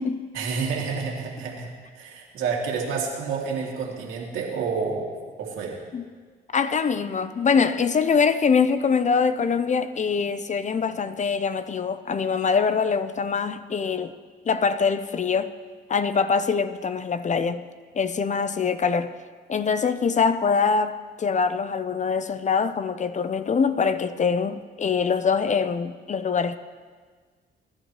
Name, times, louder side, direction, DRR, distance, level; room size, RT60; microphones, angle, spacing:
voice 1, 0.3-1.7 2.0-5.8, right 5 dB, 85° right, 2.8 m, -29 dB
voice 2, 6.5-14.1 14.5-15.5 15.9-17.6 17.9-19.1 19.5-26.6, left 5 dB, 35° left, 0.7 m, -23 dB
22.0 x 11.0 x 3.2 m
cardioid pair, 90°, 20 cm